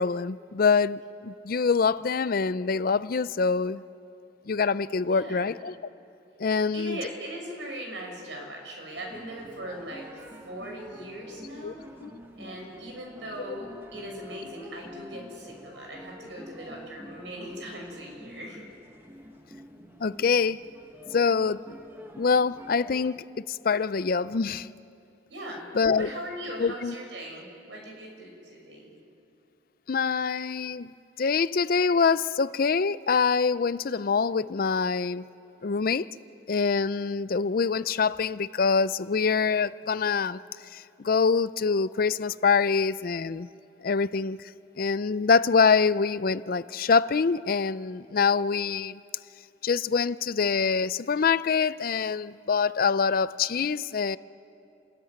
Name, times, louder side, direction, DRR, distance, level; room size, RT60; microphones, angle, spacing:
voice 1, 0.0-3.8 4.5-5.7 6.4-7.0 11.6-11.7 12.0-12.1 20.0-20.6 21.1-21.6 22.2-24.7 25.7-26.1 26.6-26.9 29.9-30.9 31.2-35.2 35.6-36.1 36.5-40.4 40.7-43.5 43.8-44.4 44.8-49.0 49.6-54.2, left 5 dB, 50° left, 0.5 m, -25 dB
voice 2, 5.1-5.5 6.7-11.8 12.4-18.6 25.3-25.6 25.9-29.0, right 1 dB, 85° right, 6.1 m, -40 dB
sound 1, 8.9-23.1, equal, 10° right, 1.4 m, -48 dB
29.5 x 14.0 x 9.5 m
head